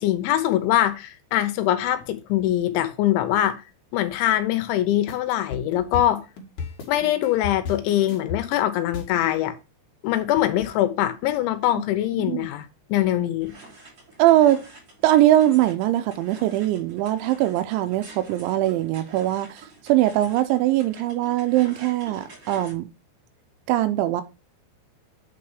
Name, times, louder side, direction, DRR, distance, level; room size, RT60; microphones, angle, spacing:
voice 1, 0.0-3.6 3.9-6.2 6.9-9.6 10.0-13.5, left 13 dB, 80° left, 3.1 m, -23 dB
sound 1, 5.1-9.3, left 5 dB, 60° left, 2.3 m, -34 dB
sound 2, 13.4-22.7, right 3 dB, 35° right, 3.4 m, -47 dB
voice 2, 14.2-14.6 15.0-22.9 23.7-24.2, right 14 dB, 80° right, 2.9 m, -21 dB
8.7 x 4.2 x 4.7 m
omnidirectional pair, 5.5 m